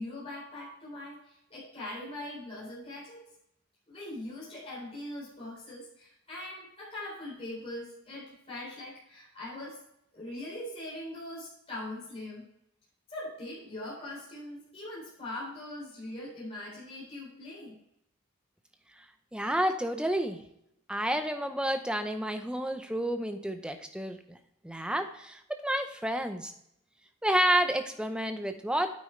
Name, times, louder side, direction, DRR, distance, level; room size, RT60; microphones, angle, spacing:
voice 1, 0.0-3.2 3.9-9.8 10.1-12.4 13.1-17.8, left 1 dB, 25° left, -6 dB, 3.8 m, -41 dB
voice 2, 19.3-20.4 20.9-24.4 24.6-26.5 27.2-28.9, right 1 dB, 5° right, 7 dB, 0.7 m, -30 dB
9.5 x 8.5 x 3.2 m, 0.77 s
head